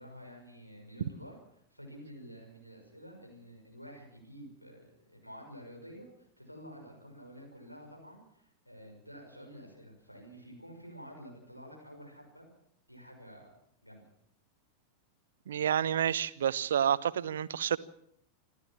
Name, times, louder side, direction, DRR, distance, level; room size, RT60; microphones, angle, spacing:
voice 1, 0.0-1.4 1.7-12.5 12.9-13.5 13.8-14.0, equal, 90° left, 6.1 m, -50 dB
voice 2, 15.5-17.8, right 9 dB, 65° right, 0.7 m, -29 dB
27.0 x 13.0 x 7.3 m
figure-of-eight pair, 90°, 0 cm